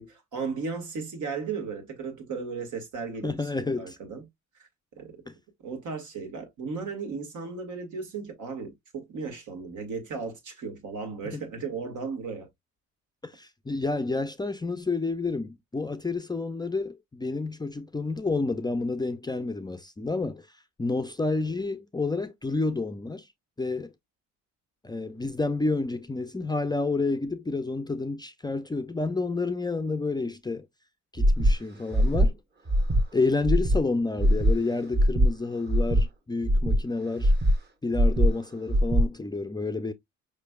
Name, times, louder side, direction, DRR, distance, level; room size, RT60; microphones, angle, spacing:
voice 1, 0.0-4.2 4.6-4.7 5.0-5.1 5.6-12.5, right 5 dB, 75° right, 1.7 m, -35 dB
voice 2, 3.2-4.0 5.3-5.4 11.3-11.4 13.2-20.5 20.8-23.3 23.6-23.9 24.8-30.7 31.1-32.4 33.1-37.3 37.8-39.9, left 3 dB, 15° left, 0.4 m, -29 dB
Breathing, 31.2-31.5 31.9-32.3 32.7-33.0 33.4-33.8 34.2-34.5 34.9-35.3 35.7-36.0 36.4-36.8 37.2-37.5 37.9-38.3 38.7-39.0, equal, 35° right, 1.2 m, -21 dB
5.1 x 3.2 x 2.2 m
cardioid pair, 90°, 30 cm